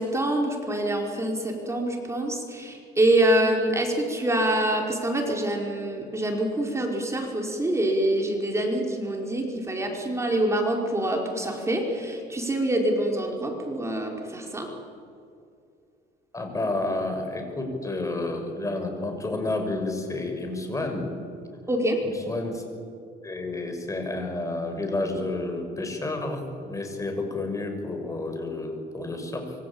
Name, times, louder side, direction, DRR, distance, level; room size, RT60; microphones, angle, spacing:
voice 1, 0.0-14.7 21.7-22.0, right 1 dB, 15° right, 1 dB, 4.9 m, -25 dB
voice 2, 16.3-21.1 22.0-22.6 23.2-29.5, left 2 dB, 20° left, 5 dB, 6.0 m, -30 dB
26.0 x 24.0 x 8.8 m, 2.4 s
cardioid pair, 110°, 17 cm